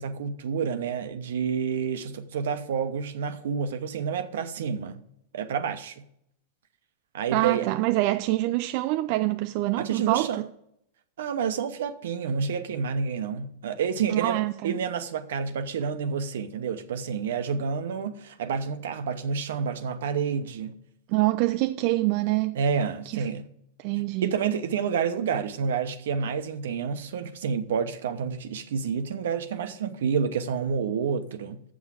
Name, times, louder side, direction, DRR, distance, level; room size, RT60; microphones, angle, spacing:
voice 1, 0.0-5.0 5.3-6.0 7.1-7.7 9.8-10.4 11.2-20.7 22.5-23.4 24.0-31.6, right 6 dB, 80° right, 0.9 m, -29 dB
voice 2, 7.3-10.5 14.1-14.8 21.1-22.6 23.1-23.2 23.8-24.3, right 18 dB, 55° right, 0.3 m, -25 dB
7.2 x 6.1 x 7.6 m
hypercardioid pair, 120°, 0 cm